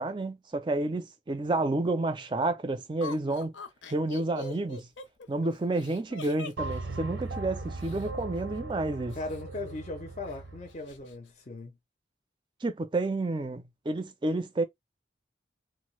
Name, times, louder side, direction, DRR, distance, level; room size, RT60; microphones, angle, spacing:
voice 1, 0.0-3.5 3.9-4.9 5.3-9.2 12.6-14.6, right 2 dB, 25° right, 0.4 m, -30 dB
Laughter, 3.0-8.1 9.1-10.0 10.3-10.4 10.7-11.2, left 4 dB, 85° left, 0.6 m, -43 dB
sound 1, 6.6-10.8, right 3 dB, 85° right, 0.6 m, -38 dB
voice 2, 9.2-11.8, left 2 dB, 35° left, 0.5 m, -38 dB
3.0 x 2.0 x 3.1 m
head